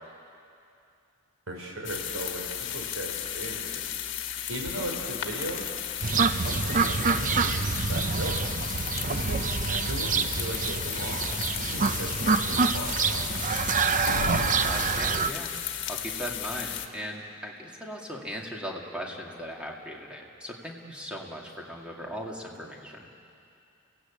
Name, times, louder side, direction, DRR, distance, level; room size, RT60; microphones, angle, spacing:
voice 1, 1.5-3.9 4.5-5.6 6.2-8.4 9.1-13.3, right 1 dB, 85° right, 1 dB, 4.9 m, -37 dB
sound 1, 1.8-16.9, left 10 dB, 60° left, 1.5 m, -34 dB
sound 2, 6.0-15.3, right 5 dB, 35° right, 0.6 m, -27 dB
sound 3, 14.1-15.7, left 3 dB, 90° left, 0.9 m, -35 dB
voice 2, 14.6-15.5 15.9-23.1, equal, 5° right, -1 dB, 2.4 m, -38 dB
29.0 x 17.0 x 8.6 m, 2.6 s
head